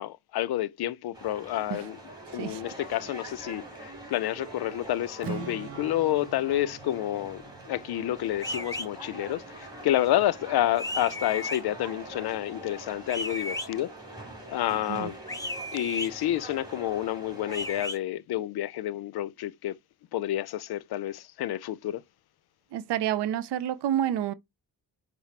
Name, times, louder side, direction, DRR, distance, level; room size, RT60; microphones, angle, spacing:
voice 1, 0.0-2.0 2.3-13.9 14.5-15.2 15.7-19.8 20.1-22.0, left 13 dB, 70° left, 0.5 m, -29 dB
sound 1, 1.1-17.9, right 1 dB, 10° right, 2.5 m, -44 dB
Strum, 5.2-9.3, right 8 dB, 35° right, 0.4 m, -43 dB
sound 2, 8.4-8.9 10.8-11.6 13.1-13.7 15.3-16.1 17.5-18.0, left 1 dB, 10° left, 0.7 m, -34 dB
voice 2, 22.7-24.3, right 11 dB, 90° right, 0.5 m, -29 dB
5.6 x 2.0 x 4.4 m
cardioid pair, 65°, 40 cm